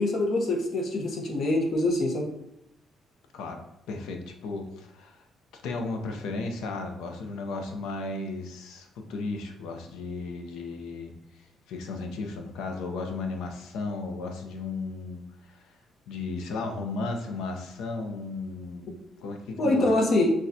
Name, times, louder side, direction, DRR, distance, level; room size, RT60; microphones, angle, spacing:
voice 1, 0.0-2.3 19.6-20.3, left 2 dB, 60° left, 1 dB, 0.9 m, -24 dB
voice 2, 3.9-5.2 5.6-15.7 16.1-18.9 19.2-19.9, left 3 dB, 90° left, 4 dB, 0.6 m, -35 dB
6.2 x 2.3 x 2.7 m, 0.80 s
cardioid pair, 90°, 0 cm